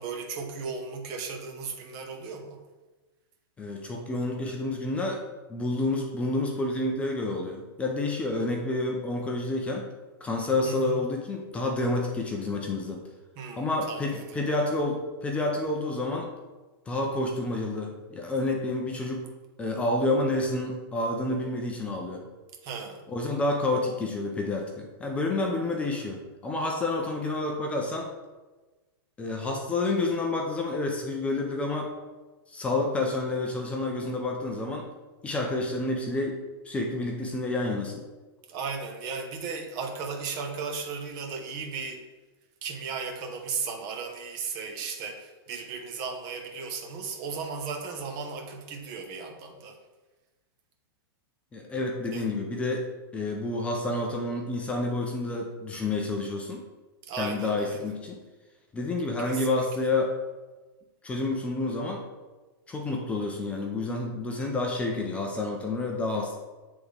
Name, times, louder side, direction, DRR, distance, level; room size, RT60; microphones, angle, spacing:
voice 1, 0.0-2.6 10.6-11.0 13.4-14.5 22.6-23.0 38.5-42.0 42.6-49.8 52.1-52.3 57.1-57.9 59.2-59.7, right 5 dB, 30° right, 3 dB, 0.8 m, -36 dB
voice 2, 3.6-5.2 5.5-9.9 10.2-13.0 13.6-16.3 16.9-19.3 19.6-22.2 23.1-28.1 29.2-31.9 32.5-34.9 35.2-38.0 51.5-52.9 53.1-56.6 57.2-58.2 58.7-60.1 61.0-62.0 62.7-66.4, left 2 dB, 10° left, 1 dB, 0.4 m, -29 dB
8.2 x 3.6 x 3.3 m, 1.2 s
supercardioid pair, 160°, 13 cm